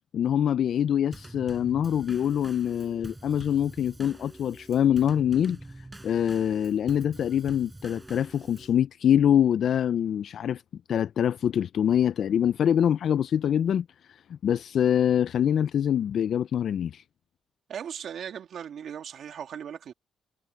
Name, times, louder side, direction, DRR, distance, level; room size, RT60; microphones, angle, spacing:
voice 1, 0.1-5.6 6.0-10.6 10.9-17.0, left 9 dB, 65° left, 0.4 m, -24 dB
Drum kit / Snare drum / Bass drum, 1.1-8.8, right 2 dB, 15° right, 5.3 m, -46 dB
voice 2, 17.7-19.9, right 8 dB, 65° right, 2.9 m, -38 dB
cardioid pair, 90°, 0 cm